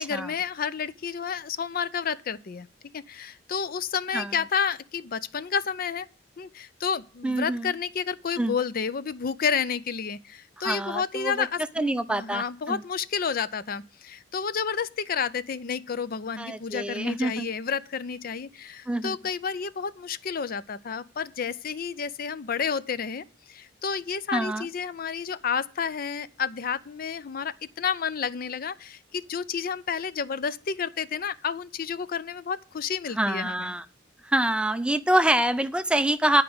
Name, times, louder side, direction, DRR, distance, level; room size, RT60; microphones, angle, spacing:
voice 1, 0.0-2.7 2.9-6.1 6.4-33.7, left 6 dB, 50° left, 0.5 m, -30 dB
voice 2, 7.2-7.7 8.4-8.5 10.6-11.5 11.8-12.8 16.4-17.5 18.9-19.2 24.3-24.7 33.2-33.8 34.2-36.4, right 1 dB, 5° right, 0.5 m, -26 dB
10.5 x 4.9 x 7.7 m
head